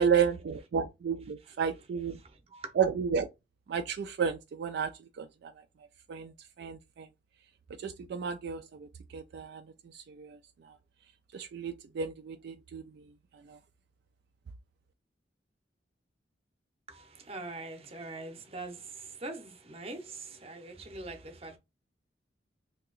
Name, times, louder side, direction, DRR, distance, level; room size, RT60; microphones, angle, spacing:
voice 1, 0.0-2.2 2.8-3.3 3.7-4.9 5.2-5.5 6.1-7.1 7.8-10.8 11.3-13.0 13.5-13.6, right 6 dB, 65° right, 0.3 m, -32 dB
voice 2, 16.9-21.6, right 2 dB, 35° right, 0.7 m, -43 dB
2.8 x 2.7 x 3.8 m
head